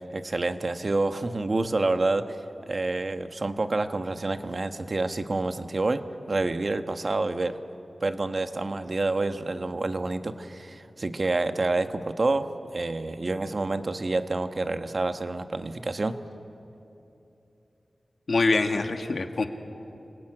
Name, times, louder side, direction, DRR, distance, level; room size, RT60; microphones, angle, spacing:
voice 1, 0.0-2.4 2.7-7.6 8.0-16.2, right 2 dB, 50° right, 8 dB, 1.2 m, -28 dB
voice 2, 18.3-19.5, left 3 dB, 65° left, 6 dB, 1.5 m, -24 dB
28.5 x 20.0 x 8.9 m, 2.9 s
wide cardioid pair, 70°, 0 cm